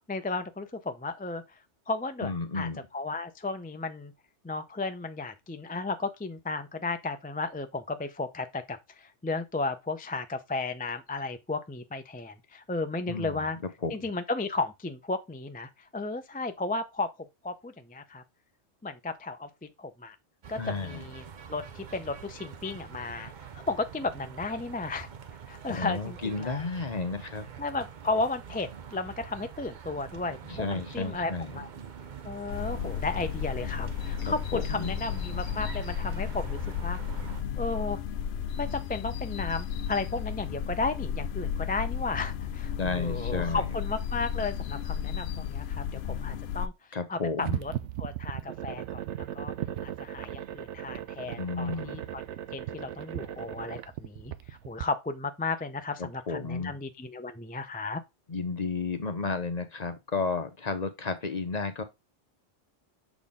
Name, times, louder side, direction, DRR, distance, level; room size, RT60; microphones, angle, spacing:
voice 1, 0.1-1.4 1.9-4.1 4.4-13.6 13.9-17.1 17.4-18.2 18.8-19.5 19.8-20.2 20.5-25.1 25.5-26.6 27.6-31.7 32.2-37.0 37.6-38.0 38.6-46.7 47.1-47.7 48.0-49.5 49.8-58.0, left 3 dB, 10° left, 0.4 m, -34 dB
voice 2, 2.2-2.8 13.1-13.4 13.8-13.9 20.6-21.0 25.7-27.5 30.5-31.6 34.2-34.9 42.8-43.6 46.9-47.6 51.4-52.0 56.0-56.7 58.3-61.8, left 4 dB, 40° left, 0.9 m, -32 dB
sound 1, 20.4-37.4, right 7 dB, 45° right, 0.7 m, -44 dB
sound 2, 32.5-46.7, left 8 dB, 70° left, 0.8 m, -33 dB
sound 3, 47.4-54.9, right 11 dB, 80° right, 0.9 m, -37 dB
7.0 x 4.2 x 3.6 m
omnidirectional pair, 1.2 m